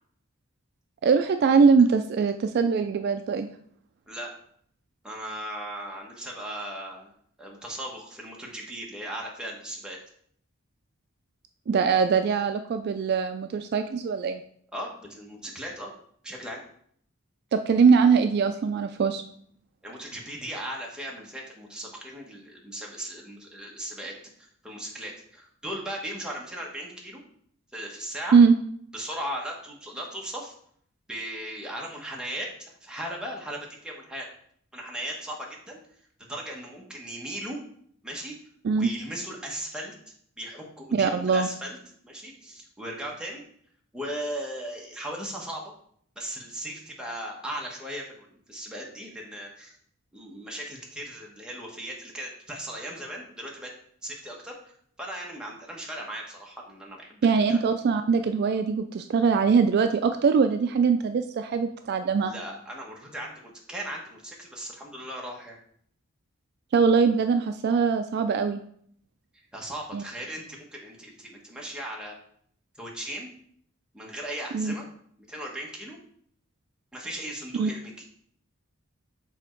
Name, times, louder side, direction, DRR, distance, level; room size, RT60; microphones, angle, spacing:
voice 1, 1.0-3.5 11.7-14.4 17.5-19.2 28.3-28.5 38.6-38.9 40.9-41.5 57.2-62.3 66.7-68.6 69.9-70.0 74.5-74.7 77.6-77.7, right 5 dB, 50° right, 8 dB, 0.3 m, -22 dB
voice 2, 5.0-7.1 7.4-10.0 14.7-15.9 16.2-16.6 19.8-24.2 24.6-27.2 27.7-28.4 28.9-30.5 31.1-34.3 34.7-35.8 36.2-37.6 38.0-38.4 38.7-39.9 40.4-41.8 42.0-43.4 43.9-45.6 46.2-49.7 50.1-53.7 54.0-57.2 57.5-57.6 62.2-65.6 69.5-72.2 72.8-73.3 73.9-74.9 75.3-76.0 76.9-77.9, right 1 dB, 5° right, -2 dB, 1.1 m, -37 dB
7.1 x 3.4 x 4.4 m, 0.64 s
head